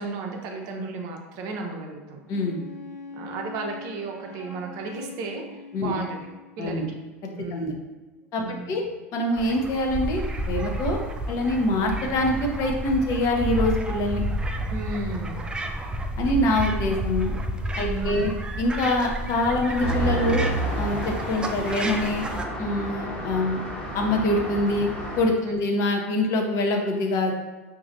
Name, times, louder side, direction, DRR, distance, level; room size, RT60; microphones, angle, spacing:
voice 1, 0.0-2.2 3.1-5.4 5.8-6.2 6.6-6.8 7.3-7.7 8.4-8.9 14.7-15.4 17.8-18.3 25.4-25.6, right 3 dB, 50° right, 1 dB, 0.6 m, -33 dB
Wind instrument woodwind instrument, 2.3-6.7, left 3 dB, 90° left, 0.5 m, -43 dB
voice 2, 2.3-2.6 5.7-5.9 6.6-6.9 7.5-7.7 8.3-8.8 9.1-11.0 11.3-14.2 16.2-17.3 17.8-18.3 18.6-20.4 20.8-22.2 22.6-23.6 23.9-24.9 25.2-27.3, left 1 dB, 45° left, 2 dB, 0.7 m, -24 dB
sound 1, 9.4-22.4, right 1 dB, 10° right, 0.3 m, -31 dB
Traffic noise roadway noise, 19.8-25.2, right 1 dB, 15° left, 0.9 m, -30 dB
4.9 x 2.7 x 2.6 m, 1.2 s
hypercardioid pair, 85°, 8 cm